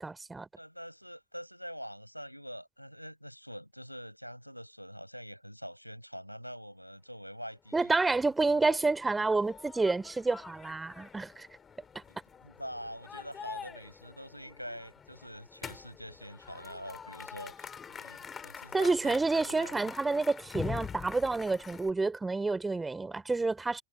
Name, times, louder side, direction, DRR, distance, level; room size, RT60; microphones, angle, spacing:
voice 1, 0.0-0.5 7.7-11.5 18.7-23.8, right 3 dB, 10° right, 2.9 m, -29 dB
voice 2, 0.6-8.0 8.5-8.9 12.1-19.8, equal, 90° right, 6.2 m, -45 dB
sound 1, 7.7-21.9, left 6 dB, 20° left, 5.2 m, -45 dB
figure-of-eight pair, 90°, 0 cm